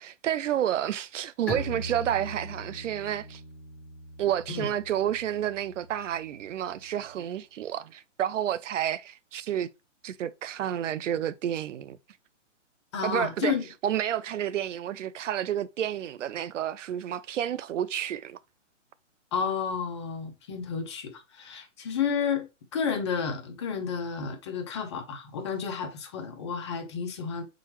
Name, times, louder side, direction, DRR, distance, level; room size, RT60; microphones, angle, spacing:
voice 1, 0.0-3.4 4.2-9.7 10.0-12.0 13.0-13.5 13.8-18.4, right 10 dB, 75° right, 0.5 m, -30 dB
Bowed string instrument, 1.5-7.1, equal, 5° left, 0.9 m, -41 dB
voice 2, 12.9-13.6 19.3-27.4, left 6 dB, 25° left, 0.5 m, -31 dB
4.1 x 3.8 x 3.0 m
hypercardioid pair, 150°, 38 cm